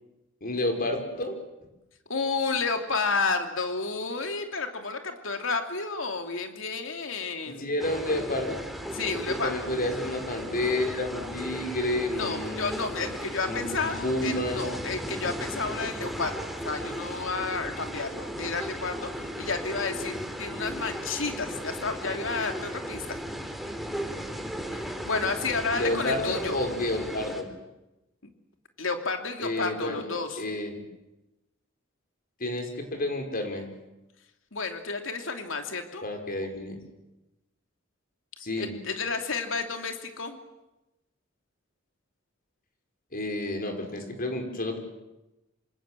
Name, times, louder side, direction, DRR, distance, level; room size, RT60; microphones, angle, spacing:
voice 1, 0.4-1.4 7.5-8.6 9.3-12.8 13.4-14.7 25.7-27.4 29.4-30.1 30.4-30.7 32.4-33.7 36.0-36.8 38.4-38.7 43.1-44.8, left 1 dB, 45° left, 4 dB, 5.4 m, -30 dB
voice 2, 2.1-7.7 8.9-9.6 12.1-23.0 24.7-26.6 28.2-28.3 28.8-30.4 34.5-36.0 38.6-40.4, left 4 dB, 80° left, 5 dB, 2.9 m, -31 dB
sound 1, 7.8-27.4, equal, ahead, 3.2 m, -36 dB
27.5 x 27.0 x 7.7 m, 0.97 s
head